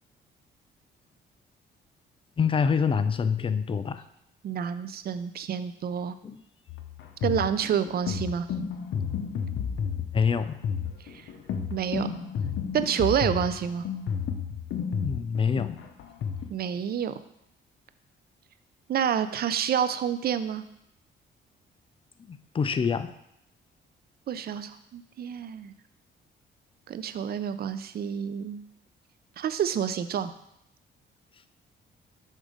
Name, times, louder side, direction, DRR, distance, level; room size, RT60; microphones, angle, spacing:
voice 1, 2.4-4.0 6.2-6.4 10.1-10.6 15.0-15.8 22.3-23.1, left 6 dB, 25° left, 11 dB, 0.4 m, -26 dB
voice 2, 4.4-6.1 7.2-8.5 11.1-11.2 11.7-12.1 12.7-13.8 16.5-17.1 18.9-20.6 24.3-25.7 26.9-28.6 29.4-30.3, right 8 dB, 50° right, 12 dB, 0.5 m, -28 dB
sound 1, 6.7-16.4, left 7 dB, 70° left, 0.8 m, -32 dB
6.4 x 3.7 x 5.1 m, 0.77 s
cardioid pair, 90°, 20 cm